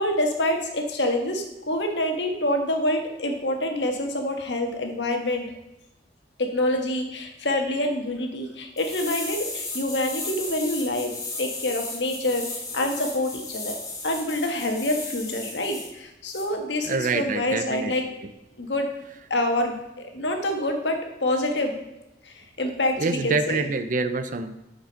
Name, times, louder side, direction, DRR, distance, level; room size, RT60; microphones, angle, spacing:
voice 1, 0.0-5.5 6.4-11.1 11.4-12.5 12.7-13.8 14.0-18.1 18.6-18.9 19.3-21.8 22.2-23.6, left 1 dB, 75° left, 4 dB, 1.4 m, -26 dB
sound 1, 8.8-15.9 16.3-16.4, left 3 dB, 20° left, 1.7 m, -35 dB
voice 2, 16.8-17.9 23.0-24.6, right 3 dB, 50° right, 11 dB, 0.6 m, -26 dB
8.5 x 5.2 x 5.1 m, 0.94 s
head